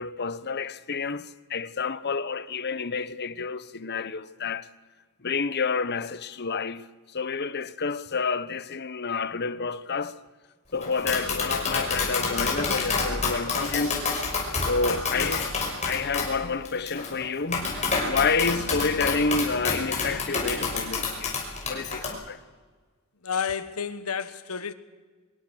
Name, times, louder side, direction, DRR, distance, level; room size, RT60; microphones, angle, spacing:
voice 1, 0.0-4.7 5.2-6.8 7.1-10.2 10.7-14.0 14.7-15.5 15.8-21.3 21.6-22.4, left 4 dB, 50° left, 1.0 m, -29 dB
Tap, 10.8-22.1, left 4 dB, 35° left, 5.9 m, -29 dB
voice 2, 14.8-15.4 23.2-24.7, left 6 dB, 90° left, 1.4 m, -31 dB
24.0 x 23.0 x 6.4 m
head